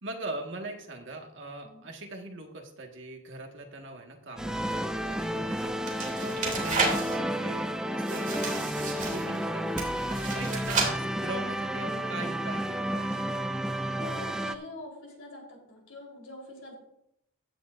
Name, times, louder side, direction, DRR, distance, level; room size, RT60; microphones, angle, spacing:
voice 1, 0.0-9.9 10.3-13.3, right 2 dB, 55° right, 2 dB, 1.7 m, -41 dB
sound 1, 4.4-14.5, equal, 5° right, 0.3 m, -31 dB
sound 2, 4.7-7.2 8.0-9.4 9.8-10.9, right 4 dB, 35° right, 2.7 m, -32 dB
voice 2, 13.9-16.7, left 2 dB, 70° left, 0 dB, 3.7 m, -45 dB
15.5 x 9.9 x 2.6 m, 0.78 s
head